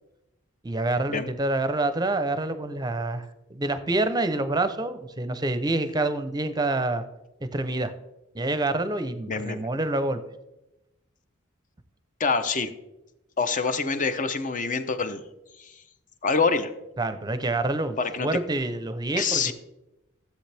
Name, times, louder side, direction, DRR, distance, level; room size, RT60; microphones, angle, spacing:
voice 1, 0.6-7.0 7.5-7.9 8.3-10.2 17.0-19.5, right 2 dB, 20° right, 11 dB, 0.7 m, -27 dB
voice 2, 9.3-9.7 12.2-12.7 13.4-15.2 15.6-15.7 16.2-16.7 18.0-18.3 19.2-19.5, left 4 dB, 40° left, 10 dB, 0.7 m, -26 dB
13.5 x 7.9 x 3.4 m, 0.93 s
head